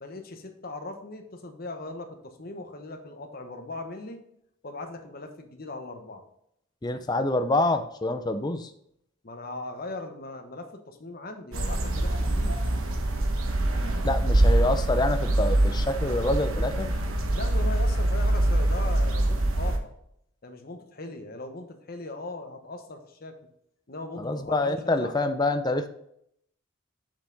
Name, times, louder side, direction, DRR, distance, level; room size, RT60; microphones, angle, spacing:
voice 1, 0.0-4.2 4.6-6.2 9.2-12.6 17.3-20.0 20.4-23.4 23.9-25.2, left 2 dB, 45° left, 5 dB, 1.1 m, -39 dB
voice 2, 6.8-8.7 14.0-16.9 24.2-25.9, left 2 dB, 20° left, 8 dB, 0.5 m, -26 dB
sound 1, 11.5-19.8, right 1 dB, 90° right, 1.1 m, -24 dB
7.1 x 5.6 x 3.9 m, 0.72 s
head